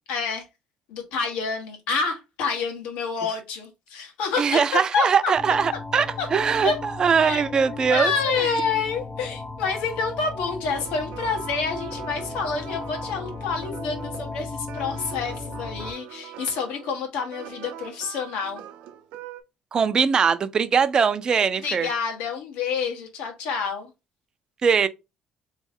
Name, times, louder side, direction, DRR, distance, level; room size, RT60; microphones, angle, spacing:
voice 1, 0.1-0.5 0.9-5.3 6.2-6.3 6.6-6.8 7.2-7.4 7.9-18.6 21.6-23.9, left 5 dB, 90° left, 1.3 m, -28 dB
voice 2, 4.4-8.5 19.7-21.9 24.6-24.9, right 6 dB, 35° right, 0.4 m, -21 dB
sound 1, 5.4-15.9, left 3 dB, 15° left, 0.6 m, -36 dB
sound 2, 10.7-19.4, right 11 dB, 85° right, 0.6 m, -42 dB
3.6 x 3.2 x 3.5 m
cardioid pair, 125°, 2 cm